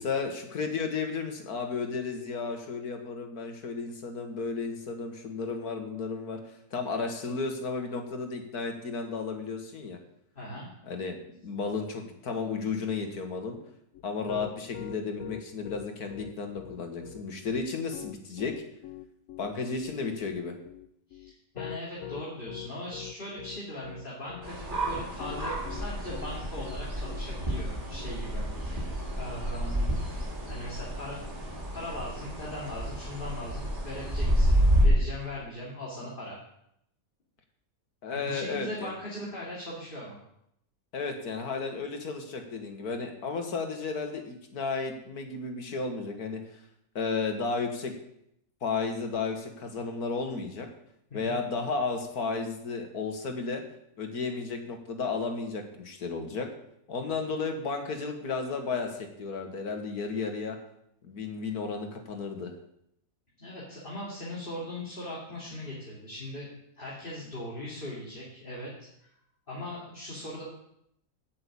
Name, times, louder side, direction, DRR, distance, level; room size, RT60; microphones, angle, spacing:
voice 1, 0.0-6.4 6.7-10.0 10.8-11.2 11.4-13.6 14.0-18.5 19.4-20.5 38.0-38.9 40.9-46.4 47.0-47.9 48.6-50.7 51.1-53.6 54.0-56.5 56.9-60.6 61.0-62.5, left 4 dB, 85° left, 4 dB, 2.1 m, -33 dB
voice 2, 10.3-10.7 21.1-28.9 29.1-29.9 30.4-31.2 31.7-36.4 38.1-40.2 51.1-51.4 57.0-57.3 63.4-66.5 66.8-68.7 69.0-69.1 69.5-70.4, left 1 dB, 35° left, -6 dB, 2.8 m, -39 dB
Piano, 13.9-28.1, left 13 dB, 70° left, 0.9 m, -43 dB
sound 1, 24.4-34.8, right 1 dB, 35° right, 2.6 m, -30 dB
8.7 x 7.7 x 8.6 m, 0.76 s
omnidirectional pair, 1.6 m